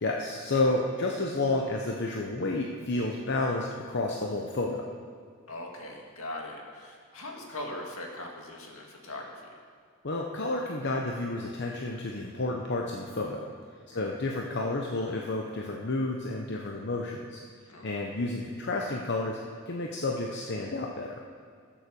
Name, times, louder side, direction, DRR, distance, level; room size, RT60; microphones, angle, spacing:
voice 1, 0.0-4.8 10.0-13.4 13.9-17.4 17.8-19.4 19.7-21.2, left 2 dB, 50° left, 0 dB, 0.9 m, -30 dB
voice 2, 5.5-9.5 13.9-14.2 17.7-18.0, left 1 dB, 70° left, 0 dB, 2.1 m, -41 dB
15.0 x 7.3 x 6.9 m, 2.1 s
head